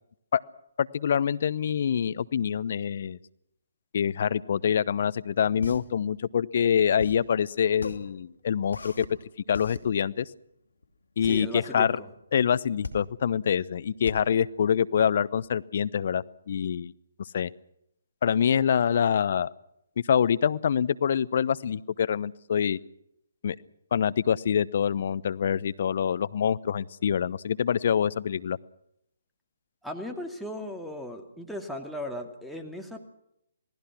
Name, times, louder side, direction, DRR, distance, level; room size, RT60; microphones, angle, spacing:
voice 1, 0.8-3.2 3.9-9.0 9.5-10.3 11.2-12.0 12.3-16.9 17.3-17.5 18.2-19.5 20.1-22.8 23.4-23.6 23.9-28.6, left 8 dB, 55° left, 18 dB, 0.8 m, -25 dB
sound 1, 5.6-15.5, left 3 dB, 80° left, 2.7 m, -40 dB
voice 2, 11.2-11.9 29.8-33.1, left 1 dB, ahead, 1 dB, 2.5 m, -37 dB
27.5 x 19.0 x 6.1 m, 0.79 s
figure-of-eight pair, 140°, 0 cm